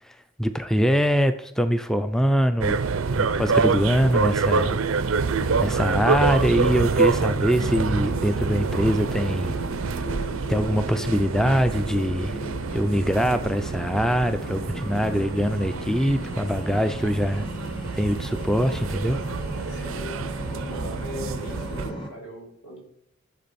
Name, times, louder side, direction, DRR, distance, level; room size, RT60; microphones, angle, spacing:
voice 1, 0.1-2.8 3.1-4.8 5.6-9.5 10.5-12.4 12.7-17.5 17.9-19.3 19.7-19.8, equal, ahead, 9 dB, 0.4 m, -23 dB
sound 1, 2.6-21.9, right 4 dB, 65° right, 0.5 m, -27 dB
sound 2, 3.0-22.1, equal, 25° left, 1.3 m, -37 dB
voice 2, 19.7-22.8, equal, 75° left, -3 dB, 5.2 m, -40 dB
13.5 x 6.8 x 4.2 m, 0.72 s
head